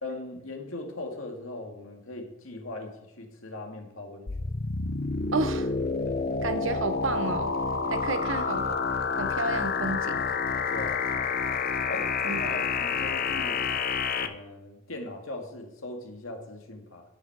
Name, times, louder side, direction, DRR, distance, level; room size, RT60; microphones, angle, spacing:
voice 1, 0.0-4.3 10.7-11.1 11.9-13.6 14.2-17.0, left 2 dB, 80° left, 2 dB, 2.2 m, -39 dB
sound 1, 4.3-14.3, left 5 dB, 45° left, 0.7 m, -29 dB
voice 2, 5.3-5.7 6.4-7.5 7.9-8.8 9.1-10.2 12.2-12.6, right 3 dB, 70° right, 9 dB, 1.0 m, -31 dB
11.5 x 9.3 x 4.7 m, 0.89 s
head